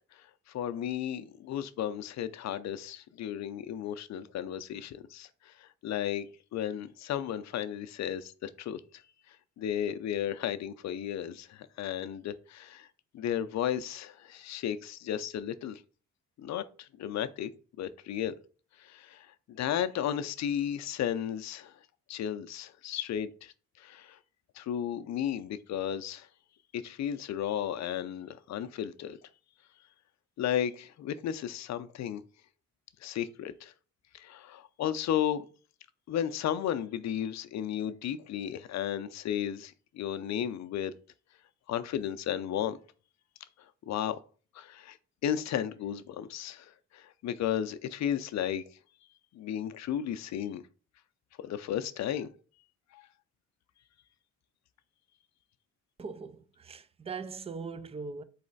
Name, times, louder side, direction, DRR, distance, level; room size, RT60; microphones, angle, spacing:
voice 1, 0.5-5.3 5.8-6.3 6.5-8.8 9.6-12.9 13.1-15.8 16.4-16.6 17.0-17.5 17.8-18.3 18.9-19.2 19.5-21.7 22.1-23.5 23.8-24.1 24.6-26.3 26.7-29.2 30.4-32.2 33.0-33.7 34.2-35.4 36.1-40.9 41.7-42.8 43.9-44.2 44.6-45.0 45.2-48.6 49.3-50.6 51.4-52.3 52.9-53.0, left 10 dB, 60° left, 0.5 m, -34 dB
voice 2, 56.0-58.2, right 5 dB, 20° right, 0.4 m, -40 dB
4.2 x 3.1 x 3.9 m
cardioid pair, 90°, 31 cm